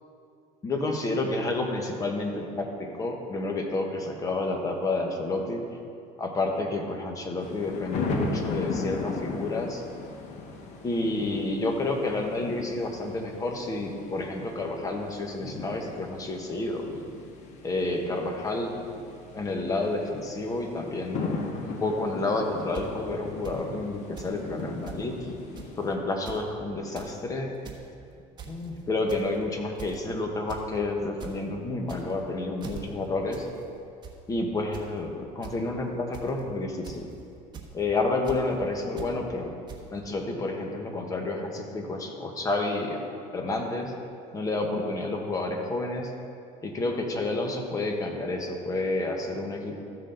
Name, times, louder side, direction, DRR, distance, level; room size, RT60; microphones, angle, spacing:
voice 1, 0.6-5.6 6.2-9.8 10.8-16.8 17.6-18.7 19.3-21.3 21.6-25.1 25.8-27.5 28.5-33.5 34.3-37.1 37.7-39.5 39.9-43.0 43.3-43.9 44.3-46.1 46.6-49.8, left 2 dB, 20° left, 2 dB, 1.2 m, -30 dB
sound 1, 7.4-25.9, left 3 dB, 50° left, 1.2 m, -37 dB
sound 2, 22.7-22.8 23.4-23.6 24.2-24.3 24.6-24.7 24.9-25.0 25.5-25.8 26.1-26.4 26.8-27.1 27.5-27.8 28.4-28.7 29.1-29.4 29.8-30.0 30.5-30.6 31.0-31.3 31.8-32.2 32.6-32.8 33.3-33.5 33.8-34.1 34.7-34.9 35.4-35.5 36.1-36.4 36.8-37.1 37.5-37.7 38.2-38.4 39.0-39.1 39.7-39.8, right 7 dB, 30° right, 1.2 m, -41 dB
14.0 x 6.5 x 3.9 m, 2.5 s
cardioid pair, 135°, 15 cm